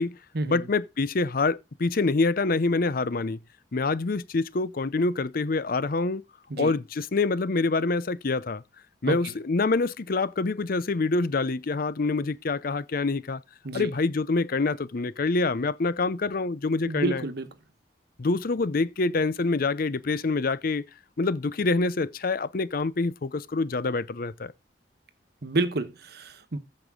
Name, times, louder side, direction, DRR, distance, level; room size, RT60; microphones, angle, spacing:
voice 1, 0.5-3.4 3.7-6.2 6.6-8.6 9.0-13.4 13.7-17.2 18.2-20.8 21.2-24.5, left 3 dB, 55° left, 0.6 m, -26 dB
voice 2, 16.8-17.5 25.4-26.6, right 2 dB, 60° right, 1.2 m, -29 dB
14.5 x 5.2 x 3.7 m
head